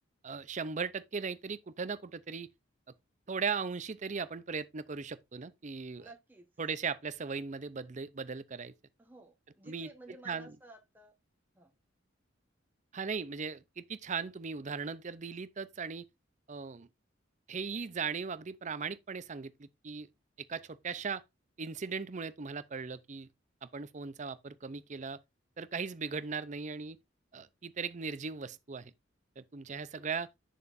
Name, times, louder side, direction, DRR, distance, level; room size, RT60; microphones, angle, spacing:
voice 1, 0.2-2.5 3.3-6.1 6.6-8.7 9.6-9.9 10.3-10.5 12.9-16.1 16.5-16.9 17.5-20.1 20.4-21.2 21.6-23.3 23.6-25.2 25.6-27.0 27.3-28.9 29.4-30.3, right 5 dB, 40° right, 0.6 m, -38 dB
voice 2, 6.0-6.5 9.0-11.1 11.5-11.7 29.7-30.0, right 2 dB, 10° right, 1.1 m, -54 dB
9.1 x 6.8 x 2.6 m
head